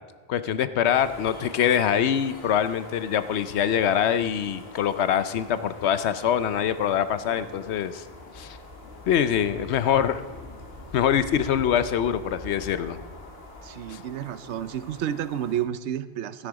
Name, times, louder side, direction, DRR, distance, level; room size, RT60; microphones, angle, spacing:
voice 1, 0.3-8.0 8.4-8.6 9.1-10.2 10.9-13.0 13.9-14.0, left 9 dB, 80° left, 13 dB, 0.9 m, -24 dB
sound 1, 0.9-15.7, left 2 dB, 65° left, 1.7 m, -44 dB
voice 2, 13.6-16.5, right 10 dB, 85° right, 14 dB, 0.9 m, -31 dB
12.5 x 10.0 x 4.8 m, 1.4 s
omnidirectional pair, 1.1 m